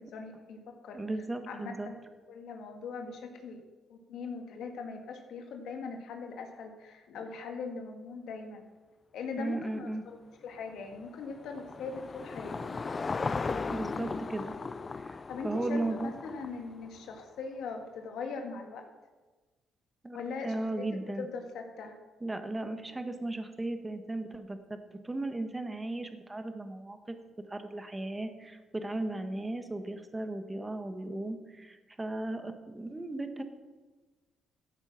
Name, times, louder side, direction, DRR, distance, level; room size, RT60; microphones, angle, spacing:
voice 1, 0.0-1.0 1.5-2.0 2.3-3.6 3.9-8.7 9.1-10.2 10.4-12.8 15.3-18.9 20.1-20.9 21.2-21.9, left 4 dB, 80° left, 4 dB, 1.9 m, -40 dB
voice 2, 0.9-1.9 9.4-10.0 13.6-14.5 15.0-16.1 20.0-20.2 20.4-21.3 22.2-27.2 27.5-33.4, right 2 dB, 15° right, 7 dB, 1.5 m, -36 dB
Car passing by / Engine, 10.6-17.1, left 4 dB, 35° left, 0.5 m, -37 dB
14.0 x 8.9 x 6.0 m, 1.3 s
cardioid pair, 90°, 0 cm